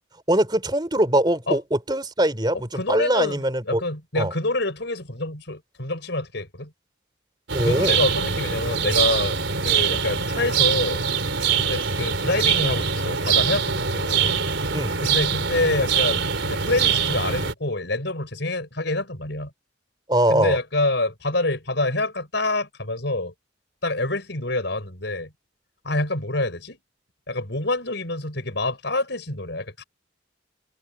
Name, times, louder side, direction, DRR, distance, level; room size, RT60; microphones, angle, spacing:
voice 1, 0.3-3.8 4.2-4.3 7.5-8.0 14.7-15.0 20.1-20.6, right 1 dB, 20° right, 4.0 m, -22 dB
voice 2, 2.7-3.4 3.7-6.7 7.6-11.0 11.6-14.4 15.0-19.5 20.3-23.3 23.8-25.3 25.8-26.8 27.3-29.8, left 2 dB, 60° left, 5.5 m, -26 dB
sound 1, 7.5-17.5, right 6 dB, 70° right, 3.6 m, -23 dB
head